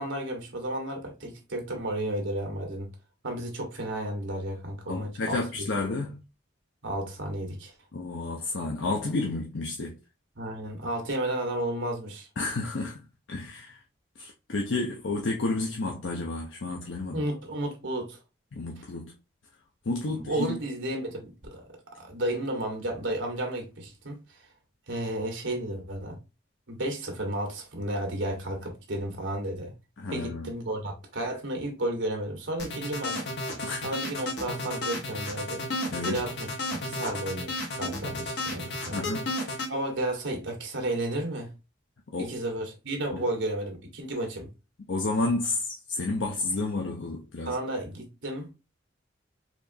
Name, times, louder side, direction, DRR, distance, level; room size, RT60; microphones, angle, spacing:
voice 1, 0.0-2.9 3.2-5.7 6.8-7.7 10.3-12.3 17.1-18.2 20.1-21.6 22.0-24.2 24.9-26.2 26.7-29.7 30.1-33.2 33.8-35.6 36.0-36.5 36.8-39.0 39.7-41.5 42.2-44.5 47.4-48.5, right 1 dB, 80° right, 1.4 m, -32 dB
voice 2, 4.9-6.2 7.9-10.0 12.4-13.0 13.3-13.8 14.2-17.2 18.5-19.1 19.9-20.6 30.0-30.5 33.6-33.9 35.9-36.2 38.9-39.3 42.1-42.3 43.1-43.2 44.9-47.5, left 2 dB, 85° left, 0.7 m, -31 dB
sound 1, 32.6-39.7, left 2 dB, 65° left, 1.3 m, -32 dB
4.3 x 2.9 x 2.7 m
head